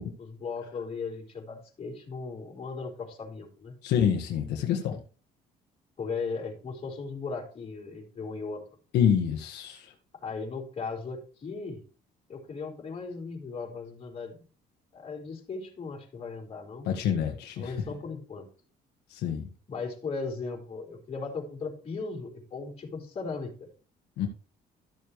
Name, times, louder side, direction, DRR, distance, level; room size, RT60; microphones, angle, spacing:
voice 1, 0.0-3.7 6.0-8.6 10.1-11.8 12.3-14.4 14.9-17.1 17.6-18.5 19.7-23.7, left 4 dB, 35° left, -2 dB, 4.2 m, -37 dB
voice 2, 3.8-5.0 8.9-9.9 16.8-17.7 19.1-19.5 24.2-24.3, left 8 dB, 80° left, 2 dB, 1.5 m, -27 dB
13.5 x 6.9 x 3.2 m, 0.39 s
cardioid pair, 110°, 17 cm